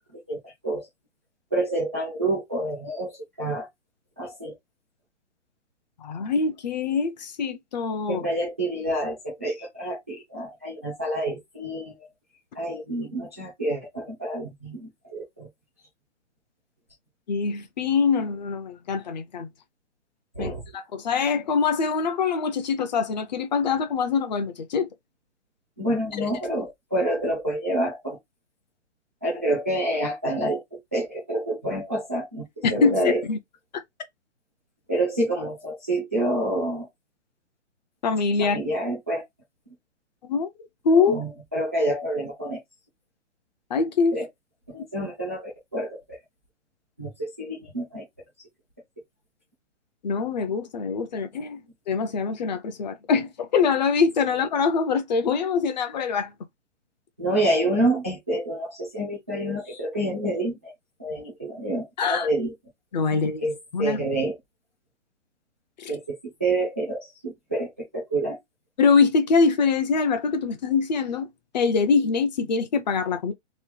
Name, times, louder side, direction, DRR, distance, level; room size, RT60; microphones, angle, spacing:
voice 1, 1.5-3.7 4.2-4.5 8.1-11.9 12.5-15.5 20.3-20.6 25.8-28.2 29.2-32.4 32.7-33.2 34.9-36.9 38.4-39.2 40.9-42.6 44.1-44.3 44.7-46.2 47.0-48.0 57.2-60.7 61.0-62.5 63.1-63.5 63.8-64.3 65.9-68.4, right 1 dB, 15° right, 0.3 m, -28 dB
voice 2, 6.0-8.3 17.3-19.5 20.4-24.9 26.2-26.3 32.6-33.0 33.3-33.4 38.0-38.6 40.2-40.5 40.8-41.2 43.7-44.2 50.0-51.6 51.9-56.3 62.0-62.3 62.9-63.4 63.7-64.0 65.8-66.0 68.8-71.3 71.5-73.3, left 5 dB, 35° left, 0.6 m, -24 dB
3.1 x 2.3 x 3.8 m
hypercardioid pair, 155°, 36 cm